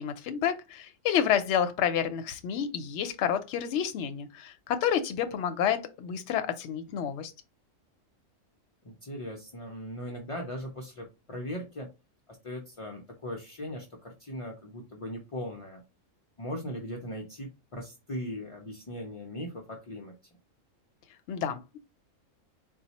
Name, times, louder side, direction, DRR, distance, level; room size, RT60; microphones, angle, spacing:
voice 1, 0.0-7.3 21.3-21.8, left 9 dB, 70° left, 0.8 m, -29 dB
voice 2, 8.8-11.9 12.4-15.8 16.4-20.1, equal, 50° left, 0.4 m, -39 dB
4.0 x 2.2 x 2.8 m
omnidirectional pair, 1.3 m